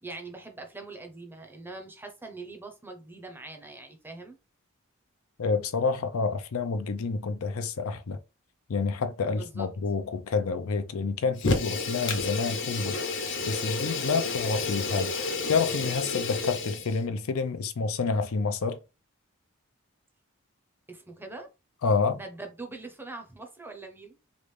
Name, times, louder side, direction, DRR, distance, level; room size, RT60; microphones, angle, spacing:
voice 1, 0.0-4.4 9.2-9.7 20.9-21.5 22.1-24.2, right 3 dB, 10° right, 0.6 m, -42 dB
voice 2, 5.4-8.2 8.7-13.0 13.5-18.8 21.8-22.2, left 4 dB, 85° left, 0.5 m, -28 dB
Fire, 11.4-17.0, left 3 dB, 60° left, 0.8 m, -30 dB
3.3 x 2.4 x 3.2 m
head